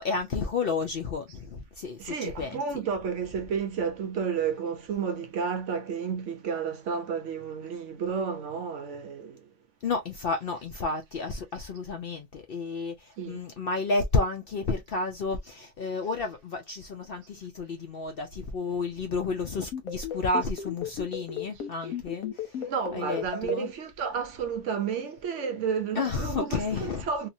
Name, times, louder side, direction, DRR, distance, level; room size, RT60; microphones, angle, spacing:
voice 1, 0.0-2.6 9.8-22.6 22.9-23.7 25.9-27.1, left 4 dB, 60° left, 0.6 m, -31 dB
voice 2, 2.0-9.4 13.2-13.4 21.8-21.9 22.6-27.3, right 6 dB, 70° right, 0.9 m, -31 dB
sound 1, 19.7-23.6, left 8 dB, 80° left, 1.3 m, -33 dB
2.8 x 2.4 x 2.5 m
omnidirectional pair, 1.4 m